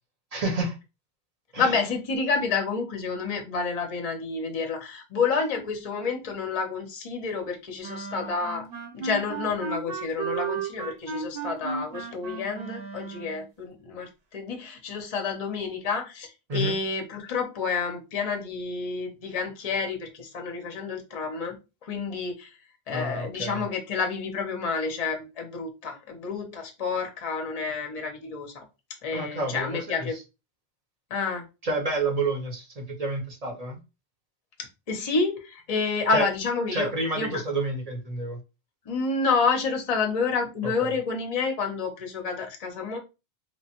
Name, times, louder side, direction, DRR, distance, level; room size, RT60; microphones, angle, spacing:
voice 1, 0.3-0.8 1.5-1.8 16.5-16.8 22.9-23.6 29.1-30.2 31.6-33.8 36.1-36.3 36.7-38.4 40.6-40.9, right 2 dB, 40° right, 0.7 m, -29 dB
voice 2, 1.6-8.6 8.9-21.6 21.8-22.5 22.9-28.6 29.0-30.2 31.1-31.4 34.9-37.4 38.9-43.0, left 4 dB, 45° left, 0.6 m, -29 dB
sound 1, 7.8-13.5, right 5 dB, 70° right, 0.9 m, -34 dB
2.9 x 2.1 x 2.8 m
omnidirectional pair, 1.1 m